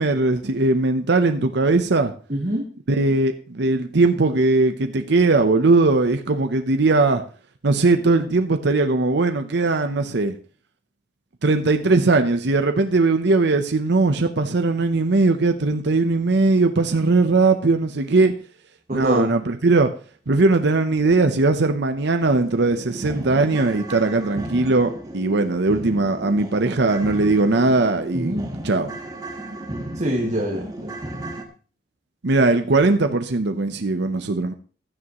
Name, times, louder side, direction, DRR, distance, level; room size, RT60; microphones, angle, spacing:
voice 1, 0.0-2.1 2.9-7.2 7.6-10.3 11.4-18.3 18.9-19.9 20.3-28.3 28.6-28.9 32.2-34.5, right 3 dB, 65° right, 7 dB, 0.8 m, -19 dB
voice 2, 2.3-2.7 18.9-19.3 28.1-28.5 30.0-30.9, equal, 40° right, -1 dB, 2.0 m, -24 dB
sound 1, 22.4-31.4, right 1 dB, 20° right, 1.5 m, -34 dB
16.0 x 11.0 x 3.0 m, 0.39 s
head